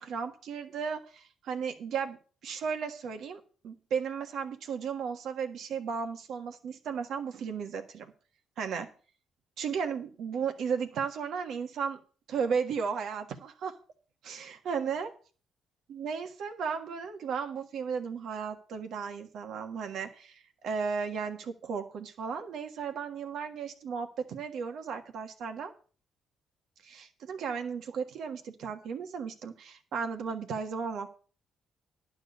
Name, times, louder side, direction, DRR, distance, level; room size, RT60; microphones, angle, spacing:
voice 1, 0.0-2.2 2.4-8.1 8.6-8.9 9.6-12.0 12.3-13.8 14.2-15.1 15.9-25.7 26.8-31.1, right 6 dB, 75° right, 6 dB, 1.5 m, -35 dB
11.5 x 4.6 x 8.2 m, 0.39 s
cardioid pair, 90°, 0 cm